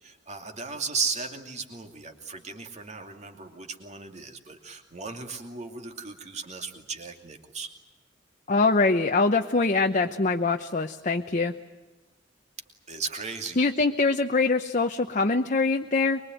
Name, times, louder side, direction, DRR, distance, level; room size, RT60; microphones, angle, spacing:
voice 1, 0.0-7.7 12.9-13.6, right 5 dB, 35° right, 4 dB, 2.7 m, -36 dB
voice 2, 8.5-11.5 13.6-16.2, left 3 dB, 40° left, 4 dB, 0.9 m, -23 dB
24.0 x 22.5 x 9.2 m, 1.1 s
head